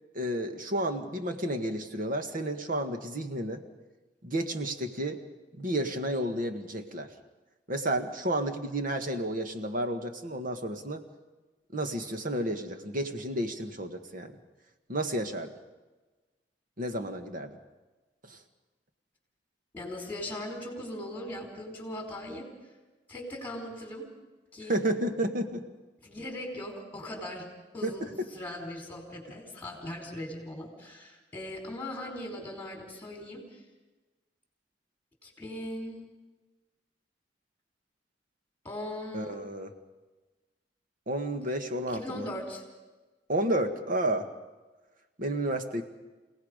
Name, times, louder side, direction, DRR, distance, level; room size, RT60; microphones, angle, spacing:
voice 1, 0.1-3.6 4.2-5.2 5.6-7.1 7.7-11.0 11.7-14.3 14.9-15.5 16.8-17.6 18.3-18.4 24.7-25.6 27.8-28.1 39.1-39.7 41.1-42.3 43.3-44.3 45.2-45.8, right 1 dB, 50° right, 7 dB, 1.7 m, -31 dB
voice 2, 19.7-22.5 23.1-24.1 24.5-24.7 26.0-27.5 27.7-33.6 35.2-36.1 38.6-39.4 41.9-42.6, left 1 dB, 10° left, 2 dB, 4.5 m, -39 dB
29.0 x 18.0 x 5.2 m, 1.2 s
head